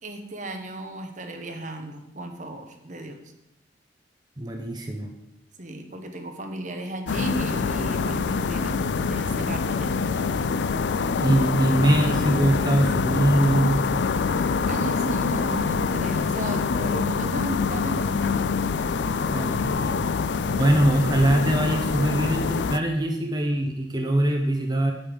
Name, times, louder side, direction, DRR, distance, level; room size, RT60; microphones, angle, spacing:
voice 1, 0.0-3.2 5.6-10.3 14.6-18.3 20.3-20.7, right 1 dB, 45° right, 6 dB, 1.2 m, -35 dB
voice 2, 4.4-5.1 11.2-13.8 19.1-20.0 20.5-24.9, right 1 dB, 25° right, 3 dB, 0.9 m, -23 dB
sound 1, 7.1-22.8, left 5 dB, 85° left, 0.4 m, -25 dB
9.0 x 5.5 x 6.8 m, 0.89 s
head